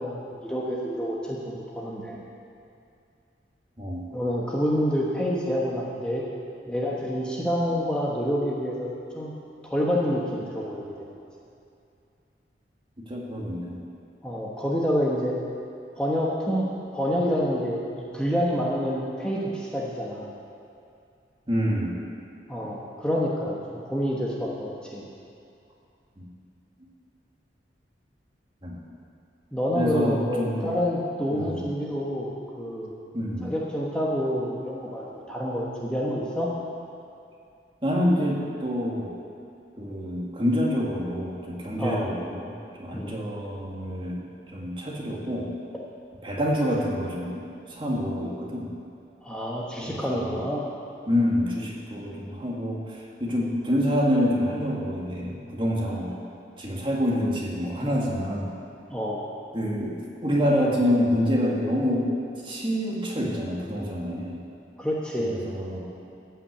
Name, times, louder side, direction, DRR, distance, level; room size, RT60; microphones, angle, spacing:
voice 1, 0.0-2.2 4.1-6.2 6.7-8.9 9.1-9.3 9.6-10.8 14.2-15.3 16.0-20.3 22.5-23.6 23.8-25.1 29.5-32.3 32.6-32.9 33.4-36.5 41.8-42.1 42.9-43.1 49.2-50.6 56.0-56.2 58.9-59.2 64.8-65.5, equal, 5° left, -5 dB, 1.1 m, -27 dB
voice 2, 13.1-13.8 21.5-22.0 26.2-26.3 28.6-28.8 29.7-30.7 31.3-31.6 33.1-33.5 37.8-39.1 39.8-44.2 44.5-45.5 46.2-47.4 47.7-48.7 49.8-50.4 51.1-56.1 56.6-58.5 59.5-62.1 62.4-64.4 65.2-66.0, equal, 30° right, -3 dB, 2.0 m, -27 dB
14.5 x 5.8 x 8.2 m, 2.6 s
head